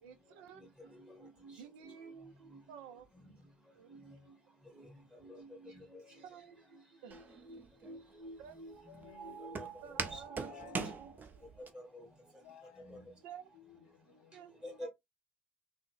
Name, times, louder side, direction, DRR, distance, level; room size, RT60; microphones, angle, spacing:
voice 1, 0.0-0.6 1.6-3.1 3.7-4.0 6.2-6.6 7.0-7.2 8.4-8.6 9.8-11.5 13.2-13.5 14.3-14.9, right 8 dB, 65° right, 0.5 m, -52 dB
voice 2, 5.2-5.7 7.5-7.6 7.9-8.7 9.2-11.1 11.9-12.0 12.9-13.0 14.6-14.9, right 1 dB, 15° right, 2.1 m, -48 dB
Walk footsteps, 7.1-11.7, right 5 dB, 35° right, 0.7 m, -42 dB
voice 3, 8.9-9.7 10.0-10.9 11.6-11.7 12.4-13.3 13.5-14.4, left 12 dB, 70° left, 0.4 m, -57 dB
3.7 x 2.1 x 3.6 m
figure-of-eight pair, 60°, 5 cm